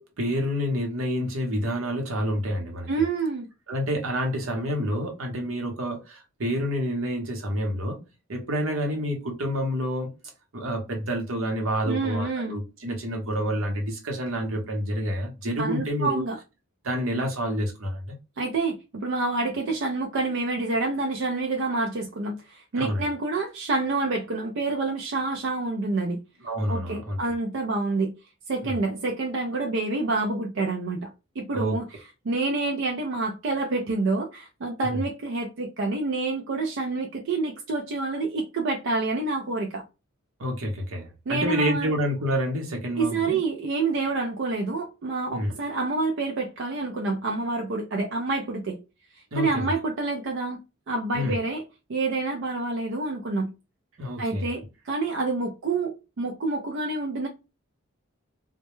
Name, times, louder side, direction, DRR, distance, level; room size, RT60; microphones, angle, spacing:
voice 1, 0.0-2.9 3.7-8.0 8.3-10.1 10.5-16.2 16.8-18.2 22.7-23.1 26.4-27.2 28.6-28.8 31.5-31.8 34.8-35.0 40.4-43.4 45.3-45.5 49.3-49.7 51.1-51.4 54.0-54.5, equal, 85° right, 0.8 m, -28 dB
voice 2, 2.9-3.5 11.8-12.6 15.6-16.4 18.4-26.2 26.7-28.1 28.5-31.1 31.4-31.8 32.2-39.8 41.3-41.9 43.0-48.8 49.3-50.6 50.9-51.6 51.9-53.5 54.2-57.3, right 3 dB, 65° right, 0.4 m, -28 dB
2.2 x 2.0 x 2.9 m
head